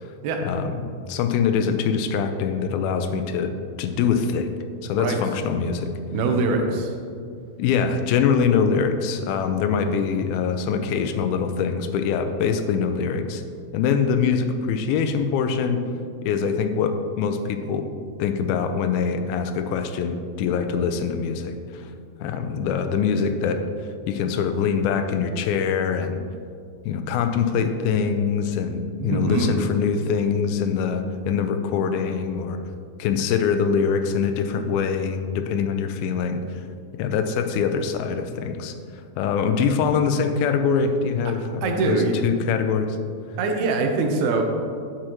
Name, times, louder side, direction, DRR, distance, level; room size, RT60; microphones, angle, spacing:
voice 1, 0.4-5.9 7.6-13.4 13.7-15.8 16.2-17.9 18.2-21.9 22.2-23.6 24.1-26.2 26.9-32.6 33.0-36.4 37.0-38.7 39.2-43.0, left 6 dB, 85° left, 8 dB, 2.4 m, -24 dB
voice 2, 6.1-6.9 29.0-29.6 41.6-42.1 43.4-44.4, right 3 dB, 85° right, 3 dB, 2.7 m, -23 dB
9.6 x 7.5 x 3.0 m, 2.3 s
omnidirectional pair, 4.2 m